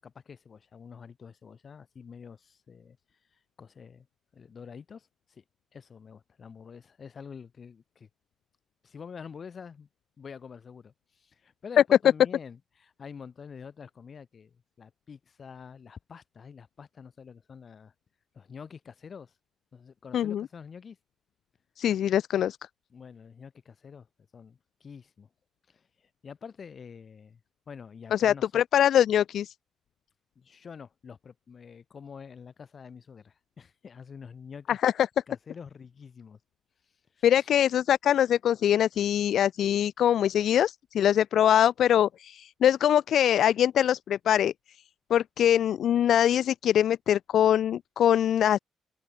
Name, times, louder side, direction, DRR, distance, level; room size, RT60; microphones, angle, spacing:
voice 1, 0.0-3.0 3.3-4.1 4.3-5.4 5.7-8.1 8.8-9.9 10.2-17.9 18.3-19.3 19.7-21.0 22.9-24.1 24.3-25.3 25.7-28.6 30.4-34.8 35.3-36.4 36.8-37.5 38.9-39.1, left 6 dB, 45° left, 7.8 m, -47 dB
voice 2, 20.1-20.4 21.8-22.6 28.1-29.5 34.7-34.9 37.2-44.5 45.1-48.6, left 10 dB, 70° left, 0.3 m, -23 dB
open air
cardioid pair, 90°, 0 cm